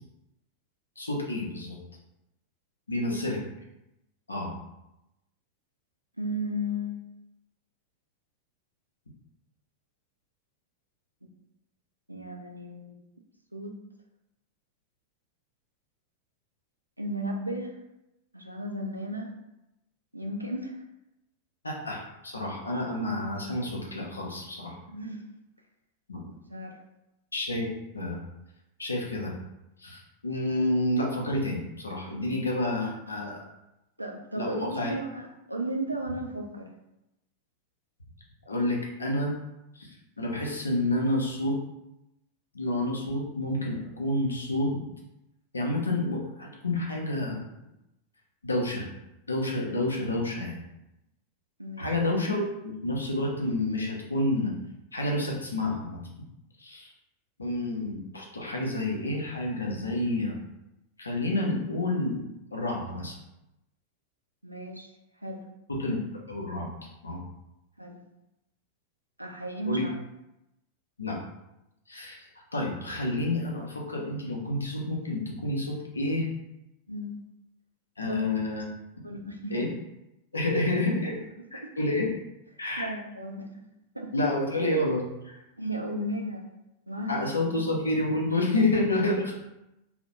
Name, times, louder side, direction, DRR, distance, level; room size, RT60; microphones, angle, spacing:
voice 1, 1.0-1.8 2.9-3.4 4.3-4.5 21.6-24.7 26.1-26.2 27.3-27.7 27.9-28.2 28.8-29.3 29.8-33.5 34.4-34.9 38.5-39.3 39.8-39.9 40.2-41.6 42.5-44.8 45.5-47.4 48.4-48.9 49.3-50.6 51.8-54.5 54.9-56.0 56.6-56.9 57.4-60.4 61.0-62.2 62.5-63.2 65.7-66.0 66.3-66.7 67.0-67.2 69.7-69.8 71.0-71.2 71.9-76.3 78.0-78.7 79.5-79.7 80.3-81.2 81.5-82.1 82.6-82.9 84.1-85.4 87.1-89.4, left 1 dB, 80° left, -1 dB, 0.5 m, -29 dB
voice 2, 6.2-7.0 12.1-13.0 13.5-13.8 17.0-17.7 18.3-19.3 20.1-20.8 24.9-25.2 26.5-26.8 34.0-36.7 51.6-51.9 64.4-64.9 65.2-65.4 67.8-68.0 69.2-70.0 76.9-77.2 78.1-78.2 79.0-79.6 81.5-81.7 82.8-83.7 83.9-84.1 85.6-86.5 86.9-87.3 89.1-89.2, equal, 85° right, 1 dB, 0.3 m, -34 dB
2.3 x 2.0 x 2.8 m, 0.90 s
figure-of-eight pair, 90°, 0 cm